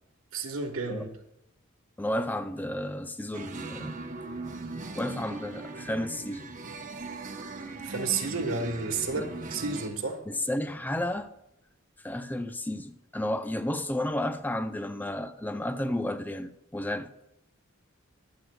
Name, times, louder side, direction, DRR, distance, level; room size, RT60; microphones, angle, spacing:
voice 1, 0.3-1.1 7.8-10.2, right 4 dB, 80° right, 1.4 m, -31 dB
voice 2, 2.0-4.0 4.9-6.5 9.2-9.3 10.3-11.3 12.0-17.1, left 1 dB, 10° left, 0.5 m, -32 dB
sound 1, 3.3-9.9, right 3 dB, 40° right, 1.0 m, -39 dB
21.5 x 7.7 x 2.3 m
head